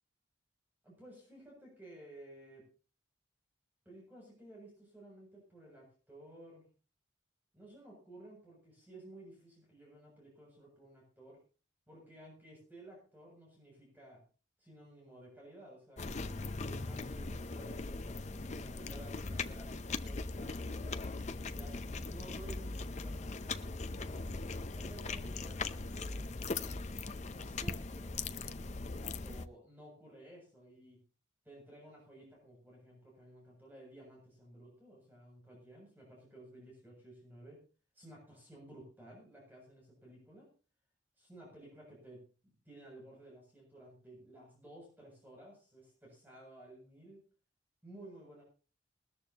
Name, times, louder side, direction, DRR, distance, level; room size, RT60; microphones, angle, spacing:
voice 1, 0.8-2.6 3.9-6.7 7.5-11.4 11.9-14.2 14.6-16.1 16.6-21.0 21.5-24.2 24.7-26.9 27.3-28.1 29.0-31.0 31.4-37.6 37.9-40.5 41.2-47.2 47.8-48.4, right 1 dB, 10° right, -3 dB, 7.4 m, -55 dB
sound 1, 16.0-29.5, left 3 dB, 35° left, 0.6 m, -40 dB
20.5 x 13.5 x 2.9 m, 0.37 s
head